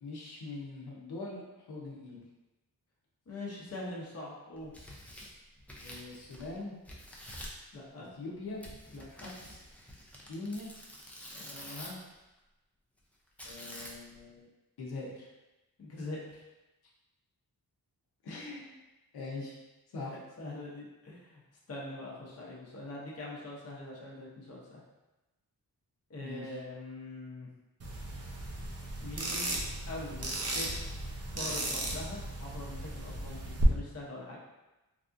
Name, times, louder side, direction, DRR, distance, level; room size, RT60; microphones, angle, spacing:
voice 1, 0.0-2.3 5.8-6.7 8.0-8.6 10.2-10.7 13.4-14.4 14.8-15.3 18.2-18.6 19.1-19.6 19.9-20.1 26.2-26.6, left 3 dB, 85° left, -4 dB, 0.7 m, -42 dB
voice 2, 3.3-4.7 7.7-8.1 8.9-9.3 11.3-12.0 15.8-16.5 20.1-21.4 21.7-24.8 26.1-27.5 29.0-29.5 29.9-30.7 31.3-34.4, left 2 dB, 40° left, -4 dB, 0.7 m, -43 dB
Tearing, 4.6-6.6 6.8-7.6 8.6-12.1 13.4-14.2, equal, 5° left, 0.4 m, -47 dB
sound 1, 27.8-33.6, right 2 dB, 40° right, 0.6 m, -37 dB
3.4 x 2.4 x 2.5 m, 1.0 s
wide cardioid pair, 115°, 37 cm